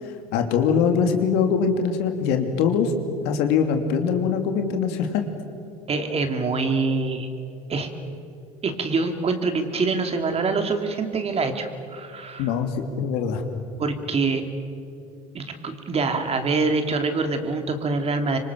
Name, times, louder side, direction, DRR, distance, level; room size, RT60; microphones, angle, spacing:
voice 1, 0.3-2.9 3.2-5.2 12.4-13.4, left 6 dB, 65° left, 5 dB, 2.9 m, -22 dB
voice 2, 5.9-7.3 7.7-7.9 8.6-12.5 13.8-14.4 15.3-18.4, right 4 dB, 35° right, 6 dB, 3.0 m, -25 dB
26.0 x 25.0 x 7.1 m, 2.6 s
hypercardioid pair, 75°, 18 cm